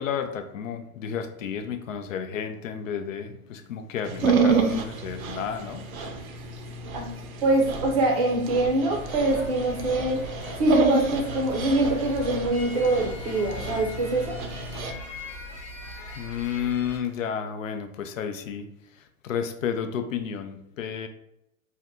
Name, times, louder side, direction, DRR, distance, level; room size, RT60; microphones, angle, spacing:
voice 1, 0.0-5.8 16.2-18.7 19.2-21.1, left 8 dB, 70° left, 8 dB, 0.5 m, -31 dB
Dog, 4.1-14.9, right 4 dB, 80° right, 0.7 m, -29 dB
voice 2, 7.4-10.2 10.6-14.3, right 2 dB, 30° right, 0 dB, 0.5 m, -24 dB
sound 1, 8.9-17.0, left 2 dB, 15° left, 0.5 m, -39 dB
2.7 x 2.2 x 3.5 m, 0.80 s
hypercardioid pair, 145°, 41 cm